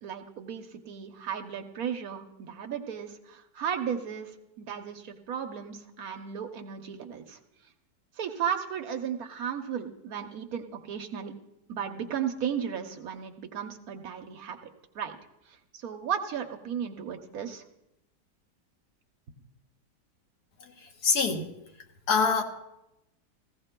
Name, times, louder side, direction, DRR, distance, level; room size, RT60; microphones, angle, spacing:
voice 1, 0.0-7.4 8.2-11.3 11.7-14.6 14.9-15.2 15.5-17.6, right 8 dB, 65° right, 1.2 m, -35 dB
voice 2, 20.6-21.5 22.1-22.4, left 5 dB, 70° left, 1.6 m, -26 dB
17.0 x 15.0 x 2.2 m
omnidirectional pair, 1.8 m